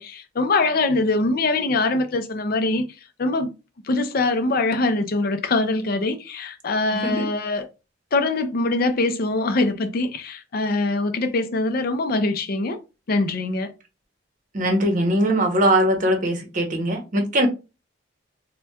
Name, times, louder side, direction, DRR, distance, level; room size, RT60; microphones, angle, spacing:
voice 1, 0.0-2.9 3.2-3.5 3.8-7.7 8.1-12.8 13.1-13.7, left 2 dB, 50° left, 0.4 m, -23 dB
voice 2, 14.5-17.5, right 1 dB, 40° right, 0.8 m, -21 dB
4.1 x 2.2 x 2.2 m
head